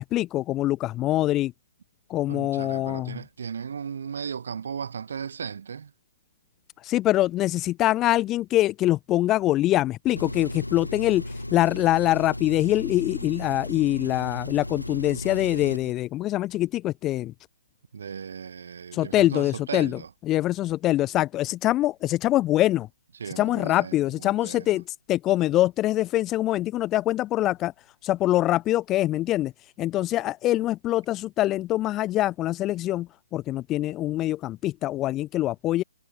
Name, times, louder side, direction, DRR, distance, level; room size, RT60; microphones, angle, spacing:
voice 1, 0.0-1.5 2.1-3.2 6.8-17.3 18.9-20.0 20.3-22.9 23.4-27.7 28.0-29.5 29.8-35.8, left 15 dB, 20° left, 0.3 m, -24 dB
voice 2, 2.3-5.9 17.9-20.1 23.1-24.8, right 6 dB, 55° right, 0.6 m, -36 dB
Engine, 10.1-15.9, left 1 dB, 90° left, 0.6 m, -35 dB
figure-of-eight pair, 135°, 0 cm